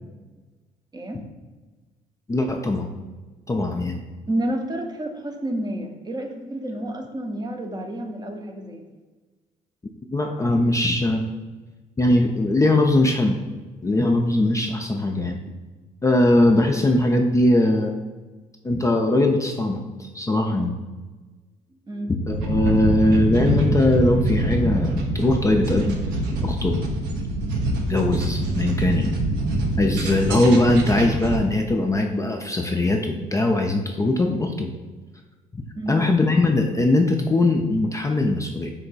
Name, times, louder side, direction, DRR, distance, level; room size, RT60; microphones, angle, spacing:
voice 1, 2.3-2.9 3.5-4.0 10.1-11.2 12.0-13.4 13.8-15.4 16.0-18.0 18.6-20.7 22.1-26.0 26.4-26.8 27.8-29.2 29.8-34.7 35.9-38.7, left 2 dB, 20° left, 2 dB, 0.4 m, -20 dB
voice 2, 4.3-8.8 21.9-22.2 35.7-36.0, right 1 dB, 25° right, 4 dB, 0.6 m, -30 dB
sound 1, 22.3-31.4, right 1 dB, 75° right, 0.6 m, -25 dB
3.8 x 2.1 x 4.0 m, 1.3 s
hypercardioid pair, 55°, 17 cm